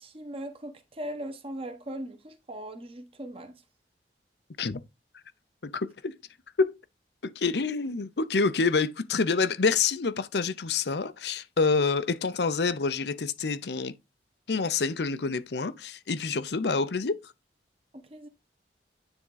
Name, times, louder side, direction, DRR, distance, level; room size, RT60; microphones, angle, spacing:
voice 1, 0.0-3.6 17.9-18.3, right 1 dB, 30° right, 1.3 m, -39 dB
voice 2, 5.6-6.1 6.6-6.8 7.2-13.9 14.5-17.2, left 4 dB, 70° left, 0.7 m, -27 dB
9.8 x 3.7 x 3.9 m
head